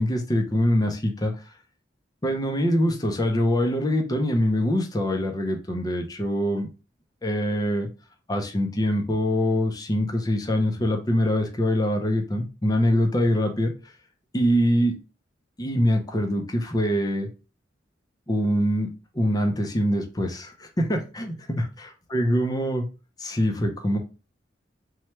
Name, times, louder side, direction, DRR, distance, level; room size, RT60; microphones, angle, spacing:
voice 1, 0.0-1.3 2.2-6.7 7.2-7.9 8.3-13.7 14.3-15.0 15.6-17.3 18.3-18.9 19.1-22.9 23.2-24.0, equal, 20° left, 3 dB, 0.6 m, -24 dB
3.1 x 2.3 x 4.3 m, 0.32 s
head